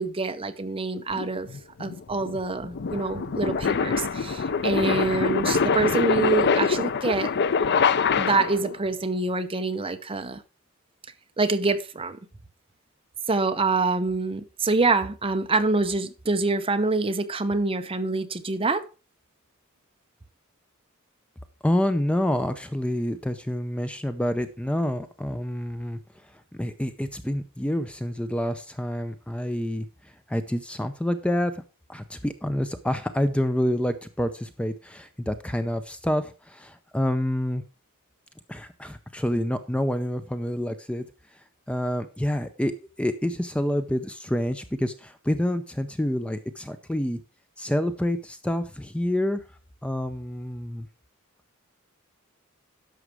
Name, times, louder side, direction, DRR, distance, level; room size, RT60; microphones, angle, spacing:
voice 1, 0.0-1.5 1.8-7.3 8.1-10.4 11.4-12.2 13.3-18.8, right 3 dB, 25° right, 0.8 m, -26 dB
sound 1, 1.1-8.7, left 5 dB, 55° left, 0.5 m, -24 dB
voice 2, 21.6-31.5 31.9-37.6 38.5-41.1 41.3-42.7 43.0-47.2 47.6-49.4 49.8-50.9, left 1 dB, 5° left, 0.5 m, -28 dB
11.0 x 6.5 x 4.7 m
head